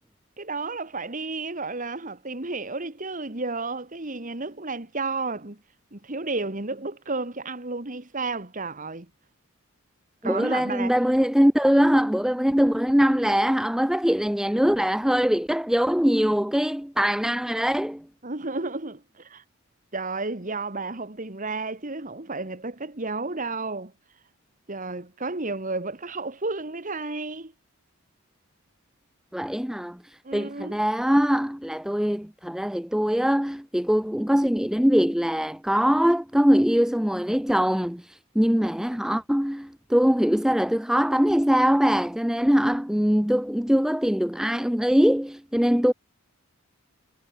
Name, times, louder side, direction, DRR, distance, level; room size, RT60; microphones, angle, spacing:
voice 1, 0.4-5.6 5.9-9.1 10.2-10.9 18.2-19.4 19.9-24.2 24.7-27.5 30.2-30.8, right 3 dB, 35° right, 1.9 m, -32 dB
voice 2, 10.2-18.0 29.3-45.9, equal, ahead, 0.6 m, -22 dB
head